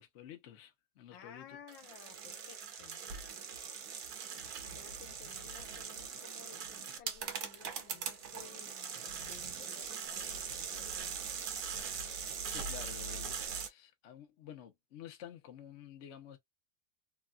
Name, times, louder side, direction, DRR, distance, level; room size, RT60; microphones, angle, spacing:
voice 1, 0.0-1.6 12.5-16.4, left 10 dB, 60° left, 0.7 m, -51 dB
voice 2, 1.1-3.0 4.7-11.2, left 9 dB, 80° left, 1.6 m, -56 dB
sound 1, 1.7-13.7, right 6 dB, 65° right, 1.1 m, -41 dB
3.4 x 2.1 x 2.3 m
omnidirectional pair, 2.0 m